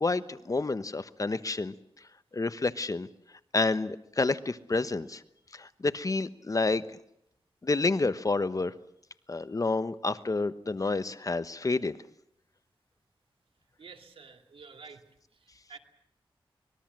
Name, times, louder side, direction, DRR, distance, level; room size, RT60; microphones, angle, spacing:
voice 1, 0.0-1.7 2.3-3.1 3.5-5.2 5.5-6.8 7.6-8.7 9.3-12.0, left 3 dB, 40° left, 13 dB, 1.1 m, -29 dB
voice 2, 13.8-15.0 15.3-15.8, right 5 dB, 85° right, 6 dB, 2.5 m, -50 dB
24.5 x 21.0 x 7.6 m, 0.75 s
wide cardioid pair, 70°, 9 cm